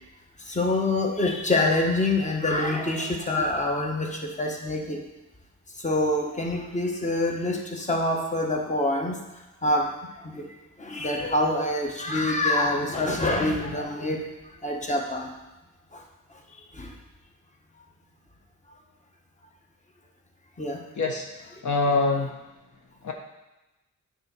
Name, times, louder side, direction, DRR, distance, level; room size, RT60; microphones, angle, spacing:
voice 1, 0.5-5.0 5.8-9.2 9.6-9.9 10.3-10.4 10.8-14.2 14.6-15.3 16.8-16.9 20.6-20.8, left 2 dB, 25° left, 1 dB, 1.3 m, -25 dB
voice 2, 20.9-22.4 23.0-23.1, left 3 dB, 70° left, 1 dB, 1.2 m, -25 dB
8.8 x 4.1 x 6.1 m, 1.0 s
cardioid pair, 80°, 30 cm